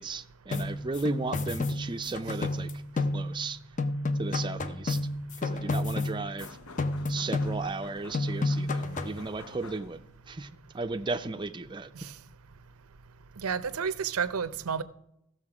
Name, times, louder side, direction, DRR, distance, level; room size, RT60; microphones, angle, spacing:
voice 1, 0.0-2.7 3.0-3.6 4.2-5.0 5.4-6.6 7.1-10.5 10.7-12.1, right 3 dB, 20° right, 0.5 m, -35 dB
sound 1, 0.5-3.5 3.8-6.5 6.8-7.9 8.1-9.2, left 2 dB, 35° left, 0.6 m, -31 dB
sound 2, 6.4-10.3, left 4 dB, 85° left, 0.8 m, -49 dB
voice 2, 13.4-14.8, right 6 dB, 85° right, 0.7 m, -30 dB
15.0 x 6.5 x 4.8 m
head